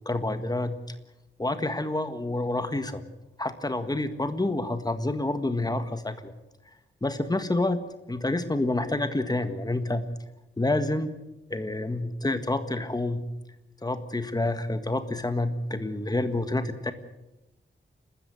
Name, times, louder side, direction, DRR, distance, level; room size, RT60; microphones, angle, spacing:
voice 1, 0.0-0.8 1.4-3.0 3.4-6.3 7.0-7.8 8.1-10.1 10.6-11.1 11.5-13.2 13.8-16.9, left 2 dB, 20° left, 10 dB, 1.6 m, -28 dB
29.5 x 13.5 x 7.7 m, 0.93 s
wide cardioid pair, 135°, 20 cm